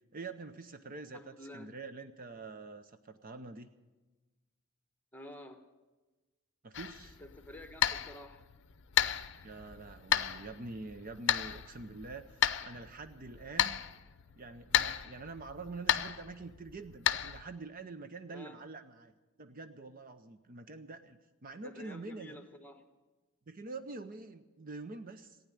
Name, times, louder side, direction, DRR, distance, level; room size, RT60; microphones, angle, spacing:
voice 1, 0.1-3.7 6.6-7.2 9.4-13.8 14.3-22.4 23.5-25.4, right 3 dB, 40° right, 10 dB, 0.6 m, -46 dB
voice 2, 1.1-1.7 5.1-5.6 7.2-8.4 18.3-18.6 21.6-22.8, left 1 dB, 10° left, 7 dB, 1.2 m, -50 dB
sound 1, 6.7-17.4, left 10 dB, 60° left, 0.6 m, -34 dB
15.5 x 9.3 x 10.0 m, 1.2 s
head